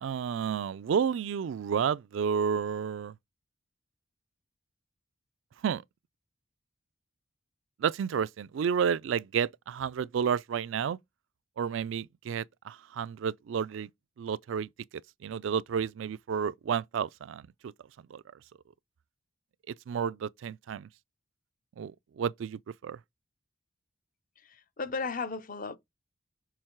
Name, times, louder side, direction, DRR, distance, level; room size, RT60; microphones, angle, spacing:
voice 1, 0.0-3.1 5.6-5.8 7.8-11.0 11.6-13.9 14.2-14.7 15.2-17.7 18.1-18.2 19.7-20.9 21.8-23.0, right 7 dB, 70° right, 0.3 m, -31 dB
voice 2, 24.4-25.8, left 4 dB, 40° left, 0.6 m, -35 dB
6.6 x 3.7 x 4.5 m
head